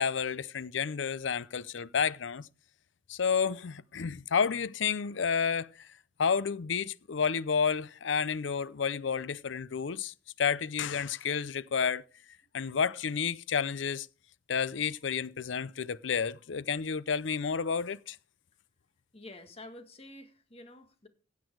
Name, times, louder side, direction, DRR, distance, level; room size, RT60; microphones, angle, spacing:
voice 1, 0.0-2.5 3.1-5.9 6.2-12.0 12.5-14.1 14.5-18.2, left 6 dB, 75° left, 0.6 m, -30 dB
voice 2, 19.1-21.1, left 1 dB, 30° left, 1.8 m, -49 dB
16.0 x 8.4 x 4.7 m
head